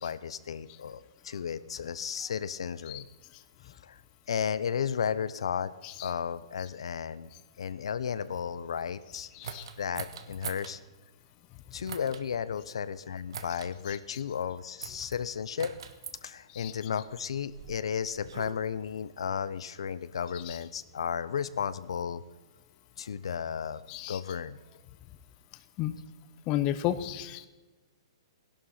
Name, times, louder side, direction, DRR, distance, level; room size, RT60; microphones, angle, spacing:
voice 1, 0.0-3.1 3.6-4.0 4.3-5.7 6.0-7.3 7.6-9.3 9.8-10.8 11.7-15.7 16.2-22.2 23.0-23.8 24.1-24.6, left 7 dB, 80° left, 15 dB, 0.8 m, -34 dB
sound 1, 9.4-10.7 11.8-12.2 13.3-13.7 14.8-15.2 15.6-16.2 17.1-18.5, right 7 dB, 60° right, 1.4 m, -42 dB
voice 2, 26.5-27.5, left 12 dB, 25° left, 11 dB, 0.7 m, -31 dB
16.5 x 11.5 x 5.7 m, 1.2 s
hypercardioid pair, 165°, 3 cm